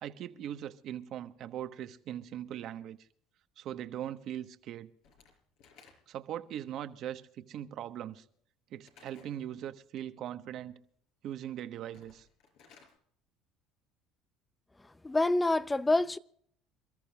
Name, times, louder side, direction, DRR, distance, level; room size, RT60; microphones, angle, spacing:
voice 1, 0.0-3.0 3.6-4.9 6.1-8.2 8.7-10.8 11.2-12.3, right 11 dB, 60° right, 1.2 m, -40 dB
Slam / Wood, 5.0-6.3 8.8-9.4 11.8-13.0, left 5 dB, 70° left, 4.4 m, -59 dB
voice 2, 15.0-16.2, left 2 dB, 15° left, 0.6 m, -26 dB
28.0 x 13.5 x 2.4 m
supercardioid pair, 105°, 0 cm